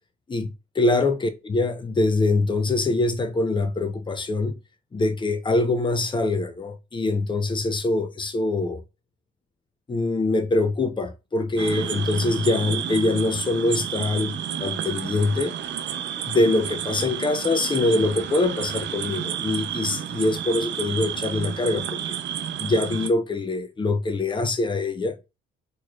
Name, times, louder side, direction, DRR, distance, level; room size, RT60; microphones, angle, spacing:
voice 1, 0.3-4.5 4.9-8.8 9.9-15.5 16.3-22.2 22.6-25.2, left 2 dB, 25° left, 0.7 m, -24 dB
sound 1, 11.6-23.1, right 9 dB, 65° right, 0.6 m, -31 dB
4.3 x 3.2 x 2.4 m
cardioid pair, 90°, 20 cm